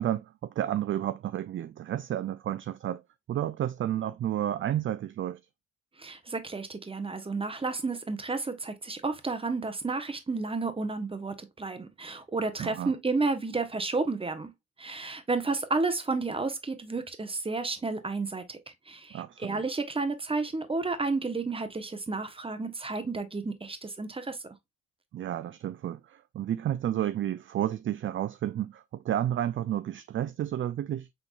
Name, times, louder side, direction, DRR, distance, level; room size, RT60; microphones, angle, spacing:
voice 1, 0.0-3.0 3.3-5.4 12.6-12.9 19.1-19.6 25.1-31.1, right 11 dB, 40° right, 0.4 m, -31 dB
voice 2, 6.0-14.5 14.8-24.4, right 3 dB, 20° right, 1.1 m, -31 dB
6.2 x 3.5 x 2.4 m
cardioid pair, 90°, 30 cm